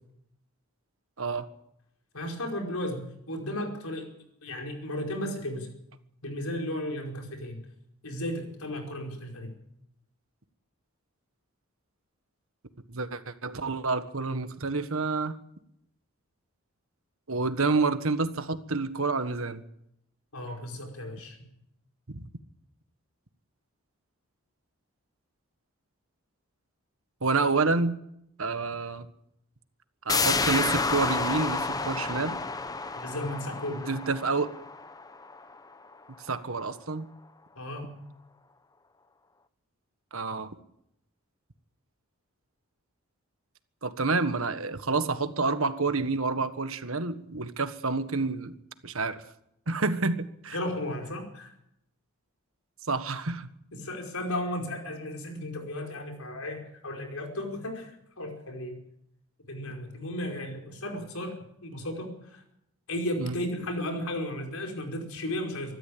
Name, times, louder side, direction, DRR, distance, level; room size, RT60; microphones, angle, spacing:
voice 1, 2.1-4.1 4.4-5.7 6.2-7.6 8.0-9.5 20.3-21.4 33.0-33.9 37.6-38.0 50.5-51.5 53.7-58.8 59.5-62.4 62.9-65.7, left 1 dB, 90° left, 2 dB, 5.2 m, -34 dB
voice 2, 12.9-15.4 17.3-19.6 22.1-22.3 27.2-28.0 28.4-29.1 30.0-32.4 33.7-34.5 36.2-37.1 40.1-40.5 43.8-48.5 48.8-49.2 49.7-50.6 52.9-53.5 63.2-63.4, right 3 dB, 75° right, 10 dB, 1.5 m, -28 dB
sound 1, 30.1-35.6 35.9-36.0, left 4 dB, 15° left, 0.8 m, -30 dB
25.0 x 12.5 x 8.7 m, 0.78 s
head